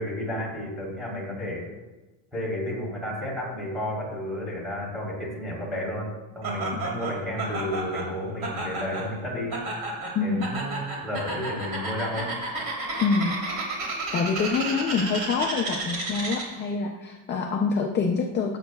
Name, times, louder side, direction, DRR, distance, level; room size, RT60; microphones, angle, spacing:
voice 1, 0.0-1.6 2.3-9.6 10.2-12.3, left 1 dB, ahead, -6 dB, 3.2 m, -32 dB
Laughter, 6.4-16.7, right 2 dB, 55° right, 3.1 m, -32 dB
voice 2, 10.1-10.5 13.0-13.3 14.1-18.6, left 5 dB, 25° left, 3 dB, 0.4 m, -26 dB
15.5 x 8.0 x 2.3 m, 1.2 s
cardioid pair, 180°, 46 cm